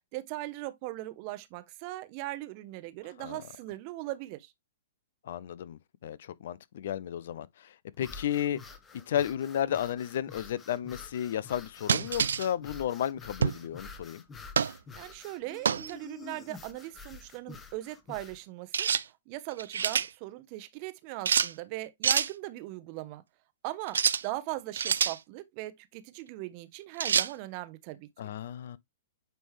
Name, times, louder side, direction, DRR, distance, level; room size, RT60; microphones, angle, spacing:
voice 1, 0.1-4.5 14.9-18.9 19.3-23.2 23.6-28.1, right 17 dB, 45° right, 0.8 m, -39 dB
voice 2, 5.2-8.6 9.1-14.2 28.2-28.8, left 10 dB, 65° left, 0.5 m, -33 dB
sound 1, 7.9-18.4, left 4 dB, 20° left, 1.1 m, -48 dB
sound 2, 11.9-12.5 13.4-13.7 14.6-14.8 15.7-15.9 18.7-19.0 19.5-20.1 21.3-21.5 22.0-22.3 23.9-24.2 24.7-25.2 27.0-27.3, right 7 dB, 80° right, 0.3 m, -26 dB
9.1 x 3.4 x 3.1 m
hypercardioid pair, 120°, 0 cm